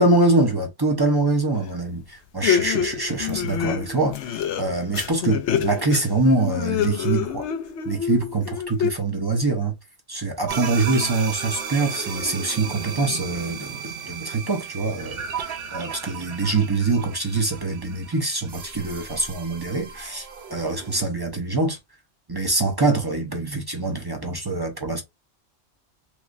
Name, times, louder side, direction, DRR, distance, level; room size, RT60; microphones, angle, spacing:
voice 1, 0.0-7.5 7.8-9.7 10.1-21.8 22.3-25.0, right 3 dB, 25° right, 0.6 m, -24 dB
sound 1, 1.7-1.8 2.4-8.9, left 9 dB, 80° left, 0.9 m, -26 dB
sound 2, 10.5-21.0, right 6 dB, 60° right, 0.9 m, -35 dB
3.1 x 3.0 x 2.5 m
omnidirectional pair, 1.2 m